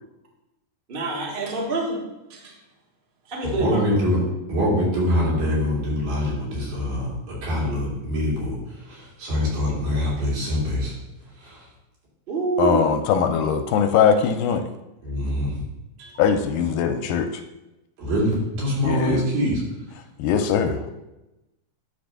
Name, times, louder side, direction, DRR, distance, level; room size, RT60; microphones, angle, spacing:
voice 1, 0.9-2.0 2.3-2.5 3.3-3.8 12.3-12.8 16.0-16.1, right 3 dB, 45° right, -2 dB, 0.7 m, -26 dB
voice 2, 3.4-4.2 4.5-10.9 11.2-11.7 15.0-15.6 18.0-19.6, equal, 80° right, -7 dB, 4.9 m, -24 dB
voice 3, 12.6-14.7 16.2-17.4 18.8-19.2 20.2-20.9, left 7 dB, 80° left, 7 dB, 2.2 m, -21 dB
9.9 x 3.4 x 6.7 m, 0.99 s
omnidirectional pair, 4.0 m